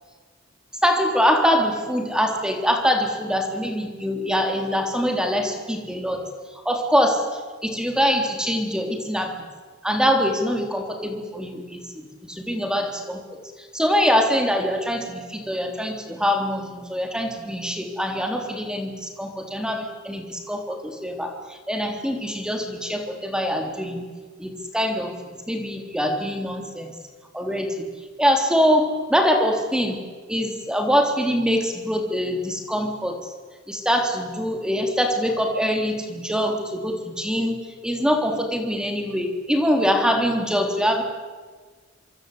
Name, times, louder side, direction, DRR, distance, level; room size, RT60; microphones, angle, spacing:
voice 1, 0.8-6.3 6.6-7.2 7.6-9.3 9.8-13.2 13.7-24.0 24.4-25.1 25.5-26.9 27.3-27.9 28.2-30.0 30.3-33.3 33.7-37.6 37.8-41.0, equal, 5° right, 3 dB, 3.5 m, -23 dB
26.5 x 25.5 x 8.4 m, 1.4 s
head